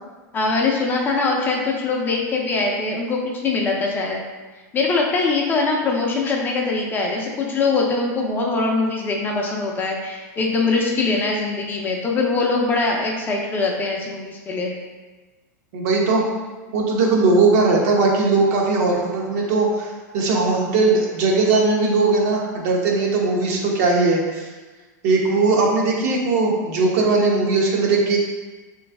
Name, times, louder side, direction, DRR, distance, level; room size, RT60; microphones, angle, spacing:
voice 1, 0.3-4.2 4.7-14.7 16.7-16.8, left 3 dB, 20° left, -1 dB, 0.5 m, -22 dB
voice 2, 15.7-16.3 16.7-24.5 25.0-28.2, right 3 dB, 60° right, -1 dB, 0.9 m, -19 dB
3.4 x 3.1 x 3.4 m, 1.3 s
supercardioid pair, 140°, 10 cm